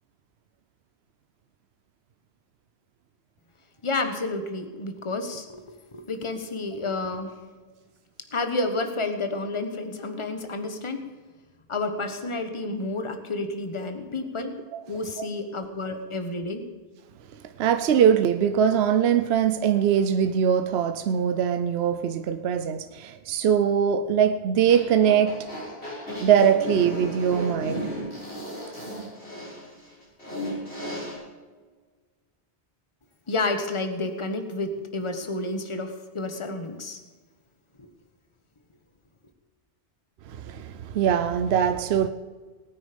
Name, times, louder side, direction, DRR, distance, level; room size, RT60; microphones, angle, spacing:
voice 1, 3.8-5.6 5.9-7.3 8.3-11.0 11.7-14.5 14.9-16.7 33.3-37.0 37.8-37.9, left 2 dB, 30° left, 1.3 m, -30 dB
voice 2, 17.6-25.5 26.2-27.9 40.3-42.1, right 8 dB, 75° right, 0.9 m, -22 dB
sound 1, 24.6-31.1, equal, 75° left, 6.3 m, -34 dB
19.5 x 9.1 x 5.2 m
omnidirectional pair, 1.1 m